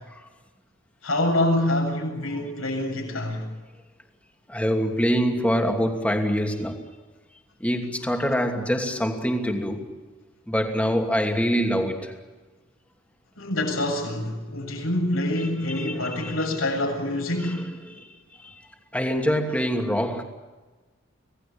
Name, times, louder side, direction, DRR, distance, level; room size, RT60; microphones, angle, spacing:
voice 1, 1.0-3.4 13.4-17.7, left 1 dB, 75° left, 7.7 m, -26 dB
voice 2, 4.5-6.9 7.6-9.9 10.5-12.2 15.4-16.4 17.4-18.6 18.9-20.2, equal, 5° left, 2.7 m, -25 dB
27.0 x 18.5 x 8.7 m
head